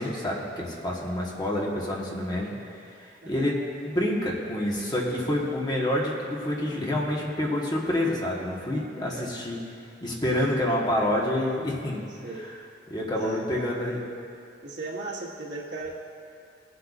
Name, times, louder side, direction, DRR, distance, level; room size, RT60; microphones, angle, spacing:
voice 1, 0.0-2.5 3.0-9.6 10.0-12.0 12.9-14.0, left 1 dB, 25° left, -3 dB, 1.4 m, -28 dB
voice 2, 3.2-3.6 9.0-9.4 12.2-12.5 13.1-13.7 14.6-15.9, right 2 dB, 70° right, -4 dB, 1.7 m, -37 dB
21.0 x 8.0 x 2.5 m, 2.4 s
head